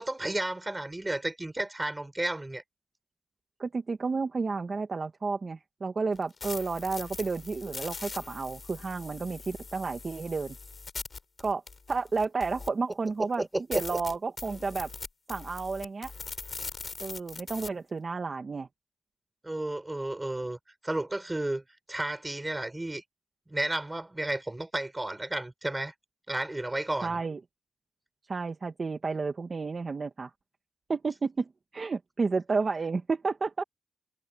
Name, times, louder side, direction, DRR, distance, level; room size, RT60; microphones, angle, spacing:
voice 1, 0.0-2.6 13.2-14.0 19.4-20.6 20.8-21.6 21.9-23.0 23.5-25.9 26.3-27.2, right 1 dB, 15° right, 5.8 m, -32 dB
voice 2, 3.6-10.5 11.4-11.6 11.9-13.4 13.7-14.9 15.3-16.1 17.0-18.7 27.0-27.4 28.3-30.3 30.9-33.6, right 4 dB, 40° right, 1.7 m, -31 dB
sound 1, 6.1-12.9 13.3-13.4 13.7-17.7, left 4 dB, 40° left, 6.9 m, -41 dB
cardioid pair, 100°, 0 cm